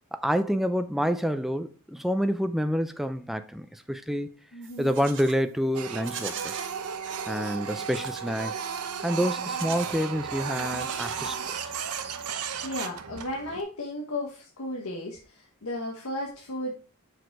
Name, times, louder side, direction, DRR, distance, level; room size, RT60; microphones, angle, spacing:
voice 1, 0.1-4.3 4.8-6.6 7.3-8.5 9.0-11.4, equal, ahead, 0.4 m, -28 dB
voice 2, 4.5-4.9 12.6-16.7, left 1 dB, 75° left, 1.1 m, -34 dB
Livestock farm animals working animals, 4.6-5.4 5.9-6.7 7.8-8.3 9.4-10.1 10.6-11.7, right 8 dB, 55° right, 0.9 m, -40 dB
Printer, 5.7-13.6, right 6 dB, 90° right, 0.8 m, -34 dB
6.5 x 4.7 x 4.6 m
head